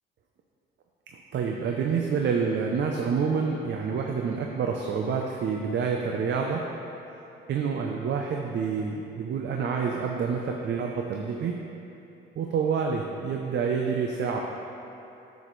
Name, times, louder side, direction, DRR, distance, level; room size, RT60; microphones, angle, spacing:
voice 1, 1.1-6.6 7.5-11.6 12.4-14.4, right 6 dB, 65° right, 1 dB, 0.6 m, -28 dB
9.6 x 7.2 x 3.2 m, 3.0 s
cardioid pair, 90°, 20 cm